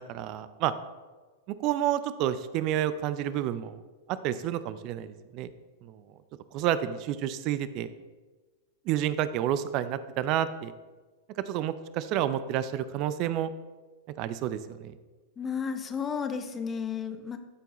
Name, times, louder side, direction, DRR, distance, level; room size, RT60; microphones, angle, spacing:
voice 1, 0.1-0.7 1.6-3.8 4.1-5.5 5.8-6.0 6.5-7.9 8.9-10.7 11.5-13.5 14.2-15.0, right 11 dB, 45° right, 14 dB, 0.5 m, -29 dB
voice 2, 15.4-17.4, left 6 dB, 25° left, 8 dB, 0.8 m, -33 dB
13.5 x 4.5 x 3.0 m, 1.3 s
hypercardioid pair, 100°, 0 cm